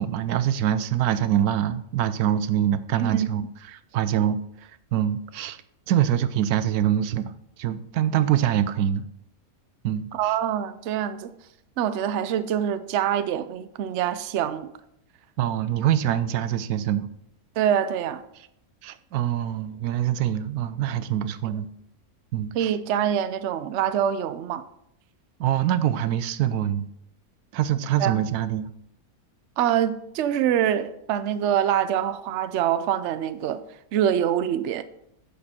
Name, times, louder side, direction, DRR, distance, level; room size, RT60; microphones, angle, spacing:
voice 1, 0.0-3.4 3.7-4.4 4.9-5.6 5.9-7.3 7.6-9.1 9.8-10.3 15.4-17.1 18.8-21.7 22.3-22.7 25.4-26.9 27.5-28.7, right 10 dB, 85° right, 1.1 m, -24 dB
voice 2, 10.1-11.3 11.8-14.7 17.6-18.2 21.4-21.6 22.5-24.6 28.0-28.2 29.6-33.6 33.9-34.8, right 10 dB, 65° right, 0.8 m, -25 dB
10.5 x 6.6 x 4.3 m
omnidirectional pair, 1.6 m